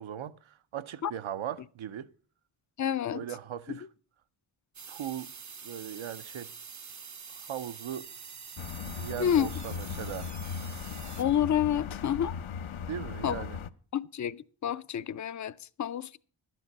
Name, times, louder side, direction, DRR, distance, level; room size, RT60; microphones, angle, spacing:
voice 1, 0.0-2.1 3.1-3.9 4.9-5.3 5.6-6.5 7.3-8.1 8.9-10.3 12.9-13.6, right 10 dB, 75° right, 0.7 m, -39 dB
voice 2, 2.8-3.2 9.2-9.5 11.2-12.3 13.2-13.4 13.9-16.2, left 9 dB, 40° left, 0.4 m, -29 dB
sound 1, 4.7-11.2, right 6 dB, 40° right, 0.6 m, -46 dB
sound 2, 8.6-13.7, left 7 dB, 75° left, 0.7 m, -38 dB
12.0 x 9.2 x 5.2 m
wide cardioid pair, 75°, 48 cm